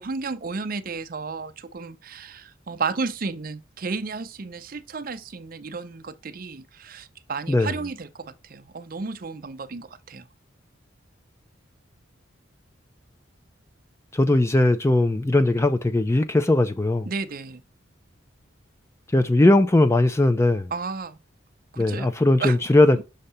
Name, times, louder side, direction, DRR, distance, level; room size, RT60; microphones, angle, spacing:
voice 1, 0.0-10.3 17.1-17.6 20.7-21.2 21.7-22.1 22.4-22.6 23.0-23.1, right 4 dB, 45° right, 0.5 m, -33 dB
voice 2, 14.1-17.1 19.1-20.7 21.8-23.0, left 2 dB, 15° left, 0.4 m, -19 dB
6.5 x 2.8 x 5.5 m
head